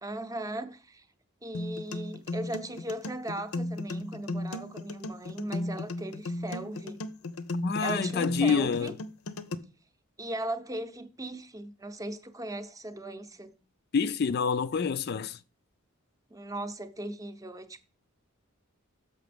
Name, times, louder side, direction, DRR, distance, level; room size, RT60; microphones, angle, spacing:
voice 1, 0.0-1.1 1.4-7.1 7.8-8.9 10.2-13.6 16.3-17.8, right 1 dB, 15° right, 0.6 m, -38 dB
sound 1, 1.5-9.5, left 2 dB, 85° left, 0.7 m, -35 dB
voice 2, 7.6-8.9 13.9-15.4, left 5 dB, 45° left, 0.3 m, -27 dB
6.9 x 5.9 x 5.0 m
head